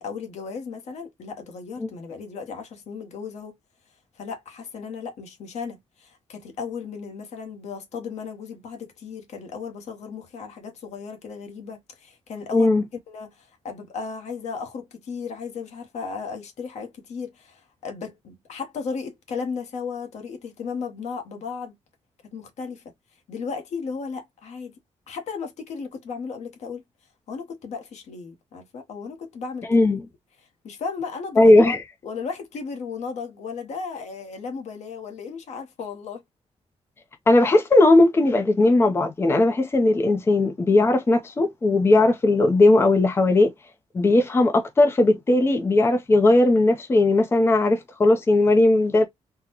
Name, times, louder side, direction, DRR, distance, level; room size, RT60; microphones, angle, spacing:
voice 1, 0.0-3.6 4.1-12.7 13.1-21.7 22.3-22.8 23.3-24.7 25.1-26.8 27.3-29.8 30.6-31.8 32.0-36.2, left 5 dB, 75° left, 0.9 m, -35 dB
voice 2, 12.5-12.8 29.7-30.0 31.4-31.8 37.3-43.5 43.9-49.1, left 2 dB, 20° left, 0.5 m, -18 dB
3.7 x 2.1 x 2.8 m
wide cardioid pair, 165°, 12 cm